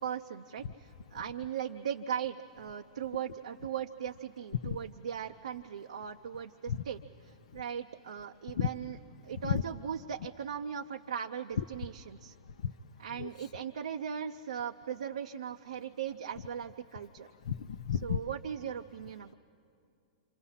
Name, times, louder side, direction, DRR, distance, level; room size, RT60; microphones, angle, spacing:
voice 1, 0.0-7.0 7.2-9.0 9.2-12.4 13.0-17.3 17.9-19.3, right 8 dB, 80° right, 5 dB, 0.6 m, -38 dB
voice 2, 17.5-18.2, left 8 dB, 70° left, 10 dB, 0.6 m, -32 dB
27.5 x 27.0 x 5.7 m, 2.5 s
hypercardioid pair, 115°, 4 cm